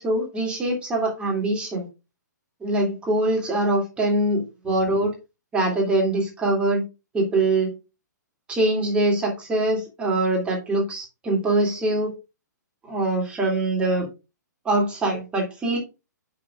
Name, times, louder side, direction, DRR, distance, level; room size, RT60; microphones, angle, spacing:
voice 1, 0.0-1.9 2.6-5.1 5.5-6.8 7.1-7.7 8.5-12.1 12.8-14.1 14.6-15.8, right 2 dB, 10° right, -2 dB, 2.4 m, -23 dB
6.4 x 5.9 x 3.6 m, 0.27 s
hypercardioid pair, 155°, 10 cm